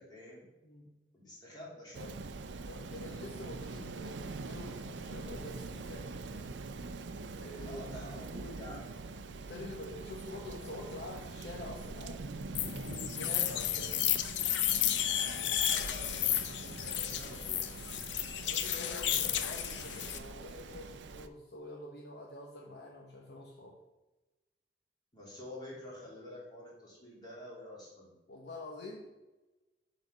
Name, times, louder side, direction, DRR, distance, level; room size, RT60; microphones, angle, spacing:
voice 1, 0.0-0.5 1.1-2.2 7.6-9.0 15.2-17.7 25.1-28.2, left 1 dB, 25° left, -5 dB, 2.9 m, -49 dB
voice 2, 0.6-1.0 2.7-6.1 7.3-7.9 9.3-12.6 13.1-14.0 18.2-23.8 28.3-29.1, left 2 dB, 65° left, -1 dB, 1.0 m, -47 dB
Rain, 1.9-21.3, right 3 dB, 85° right, 0.5 m, -44 dB
sound 1, 12.5-20.2, left 11 dB, 90° left, 0.6 m, -32 dB
8.1 x 4.1 x 6.3 m, 1.1 s
head